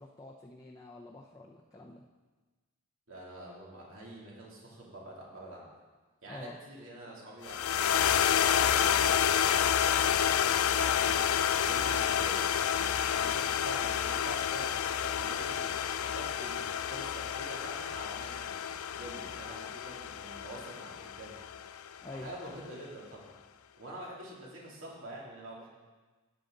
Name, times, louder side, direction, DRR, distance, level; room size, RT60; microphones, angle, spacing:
voice 1, 0.0-2.0 6.2-6.6 22.0-22.3, left 2 dB, 15° left, -3 dB, 0.6 m, -47 dB
voice 2, 3.1-5.7 6.2-9.6 10.1-11.2 11.6-18.6 18.9-23.3 23.8-25.7, right 1 dB, 65° right, -4 dB, 2.9 m, -47 dB
sound 1, 7.4-21.9, left 9 dB, 80° left, 0.4 m, -29 dB
12.5 x 9.3 x 3.9 m, 1.3 s
head